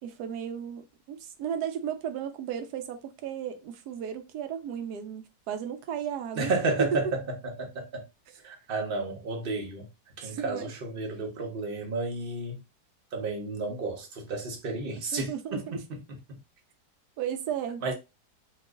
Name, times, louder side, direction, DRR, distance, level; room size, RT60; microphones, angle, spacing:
voice 1, 0.0-6.5 8.3-8.4 10.2-10.7 15.1-15.8 17.2-17.9, right 9 dB, 75° right, 1.1 m, -35 dB
voice 2, 6.4-7.2 7.6-8.0 8.4-9.9 10.2-12.6 13.1-15.6 17.8-17.9, right 3 dB, 50° right, 0.7 m, -31 dB
2.9 x 2.4 x 3.5 m
omnidirectional pair, 1.9 m